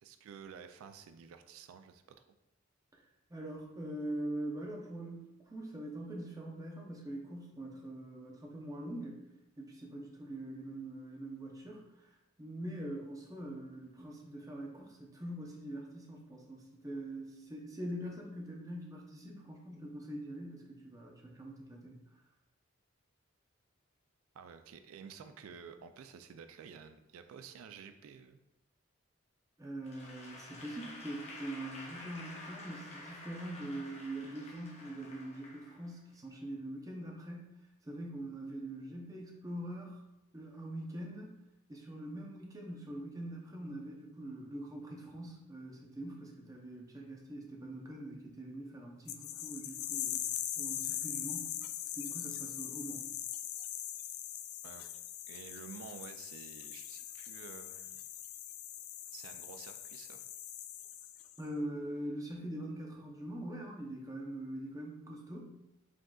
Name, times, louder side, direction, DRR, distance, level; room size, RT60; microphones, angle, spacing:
voice 1, 0.0-2.0 24.3-28.4 54.6-54.9 55.3-58.0 59.1-60.2, right 7 dB, 90° right, 9 dB, 0.3 m, -51 dB
voice 2, 3.3-9.2 9.6-12.1 12.4-22.0 29.6-37.5 37.8-40.0 40.3-41.3 41.7-50.2 50.6-51.5 52.0-53.0 61.4-65.5, right 1 dB, 15° right, -1 dB, 0.7 m, -43 dB
Applause / Crowd, 29.8-36.1, left 2 dB, 30° left, 0.8 m, -50 dB
sound 1, 49.1-61.4, left 12 dB, 80° left, 0.3 m, -41 dB
5.0 x 3.7 x 2.3 m, 0.91 s
head